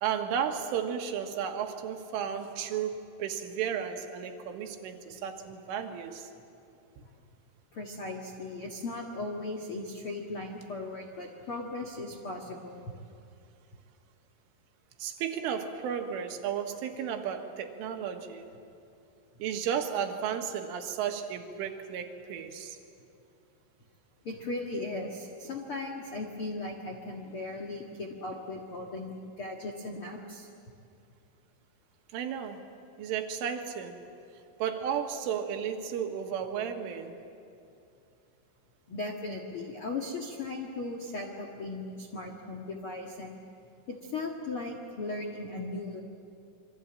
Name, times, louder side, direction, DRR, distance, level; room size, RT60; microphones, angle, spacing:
voice 1, 0.0-6.3 15.0-18.5 19.4-22.8 32.1-32.6 33.0-34.0 34.6-37.1, right 8 dB, 80° right, 5 dB, 4.1 m, -33 dB
voice 2, 7.7-12.9 24.2-30.5 38.9-43.3 43.9-46.0, left 2 dB, 85° left, 1 dB, 1.2 m, -37 dB
27.5 x 23.5 x 8.8 m, 2.6 s
omnidirectional pair, 5.7 m